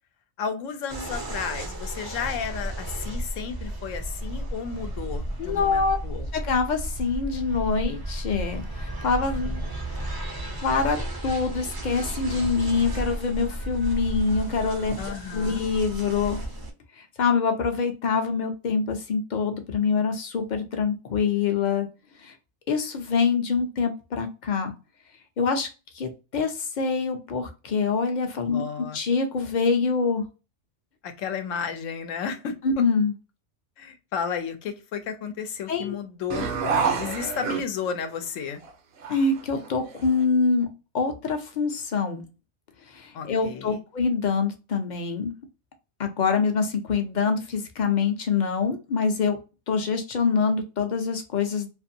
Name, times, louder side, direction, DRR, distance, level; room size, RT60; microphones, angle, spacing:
voice 1, 0.4-6.3 15.0-15.7 28.5-29.0 31.0-32.6 33.8-36.5 36.9-38.6 43.1-43.8, left 7 dB, 90° left, 8 dB, 1.0 m, -33 dB
sound 1, 0.9-16.7, right 1 dB, 35° right, 0.3 m, -33 dB
voice 2, 5.4-6.0 6.3-9.6 10.6-11.0 11.2-16.4 17.2-21.9 22.2-22.3 22.7-24.7 25.4-25.7 25.9-30.2 32.6-33.1 35.7-35.9 39.1-40.7 40.9-42.2 42.9-45.3 46.0-49.4 49.7-51.7, left 5 dB, 50° left, 5 dB, 0.6 m, -25 dB
sound 2, 36.3-38.1 38.6-38.7 39.0-40.2, right 5 dB, 60° right, 0.8 m, -28 dB
2.6 x 2.5 x 2.6 m, 0.31 s
omnidirectional pair, 1.3 m